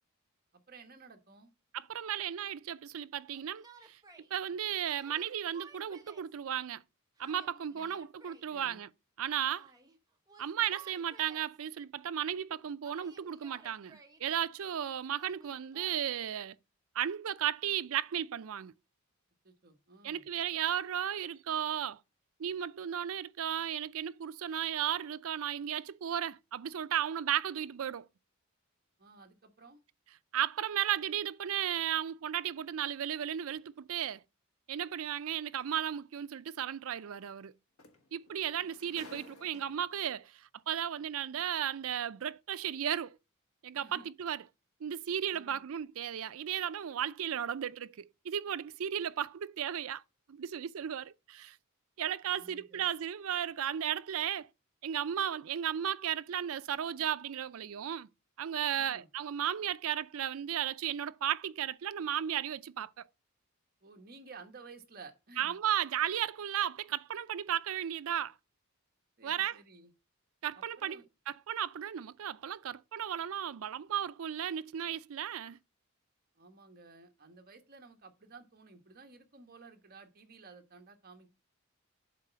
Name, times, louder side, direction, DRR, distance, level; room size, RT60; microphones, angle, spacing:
voice 1, 0.5-1.5 7.7-8.0 8.5-8.8 19.4-20.2 29.0-29.8 43.7-44.1 45.3-45.6 52.2-52.8 58.7-59.1 63.8-65.6 69.2-69.9 70.5-71.1 76.3-81.3, right 4 dB, 45° right, 1.2 m, -54 dB
voice 2, 1.7-4.0 4.3-6.8 7.2-8.9 9.2-9.7 10.4-16.6 16.9-18.7 20.0-22.0 22.4-28.1 30.3-34.2 34.7-37.5 38.1-43.2 43.6-44.4 44.8-50.0 50.3-51.6 52.0-54.5 54.8-58.1 58.4-62.9 65.4-68.3 69.2-69.6 70.4-71.0 71.3-75.6, right 9 dB, 70° right, 0.4 m, -35 dB
Yell, 3.3-4.3 5.0-6.3 7.2-8.5 9.5-10.0 10.3-11.6 12.8-14.3 15.2-16.0, right 5 dB, 15° right, 0.9 m, -56 dB
sound 1, 35.6-35.7 37.4-37.5 37.8-40.0 41.0-41.1, left 2 dB, 70° left, 1.3 m, -54 dB
7.5 x 4.1 x 5.7 m
head